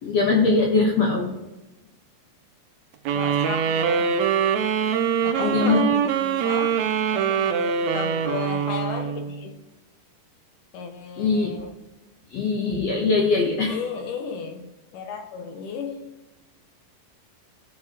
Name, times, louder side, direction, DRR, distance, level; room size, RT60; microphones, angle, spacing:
voice 1, 0.0-1.3 5.4-5.8 11.2-11.5 12.3-13.8, left 3 dB, 60° left, -1 dB, 1.9 m, -21 dB
voice 2, 3.1-4.1 5.2-6.8 7.1-9.6 10.7-11.7 13.7-16.1, left 5 dB, 80° left, 5 dB, 2.4 m, -34 dB
sound 1, 3.1-9.5, right 7 dB, 75° right, 1.7 m, -23 dB
17.5 x 6.7 x 2.9 m, 1.0 s
omnidirectional pair, 3.8 m